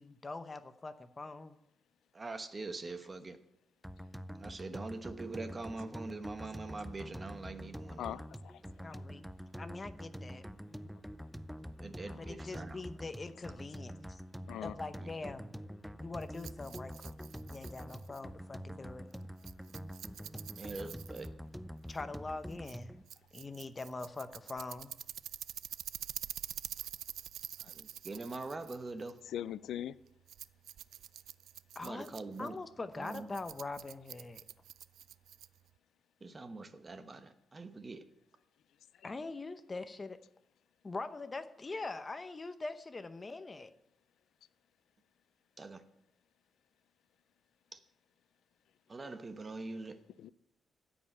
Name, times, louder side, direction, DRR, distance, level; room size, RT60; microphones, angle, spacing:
voice 1, 0.0-1.6 8.8-9.2 9.6-10.4 12.0-14.2 14.6-15.5 16.0-17.1 17.4-19.1 21.9-23.0 23.3-24.9 31.7-34.4 39.0-40.2 40.8-43.7, left 3 dB, 25° left, 0.8 m, -43 dB
voice 2, 2.1-3.4 4.4-8.1 11.8-12.7 15.0-15.1 20.6-21.3 27.8-29.1 31.8-32.5 33.0-33.2 36.2-38.0 45.6-45.8 48.9-49.9, right 3 dB, 25° right, 1.0 m, -43 dB
sound 1, 3.8-23.0, equal, ahead, 0.4 m, -46 dB
voice 3, 8.0-8.6 8.9-9.0 12.2-12.3 14.5-14.8 29.2-29.9 50.2-50.3, left 11 dB, 90° left, 0.4 m, -41 dB
Rattle, 16.2-35.8, right 11 dB, 90° right, 0.3 m, -48 dB
14.0 x 5.4 x 8.6 m
cardioid pair, 120°, 0 cm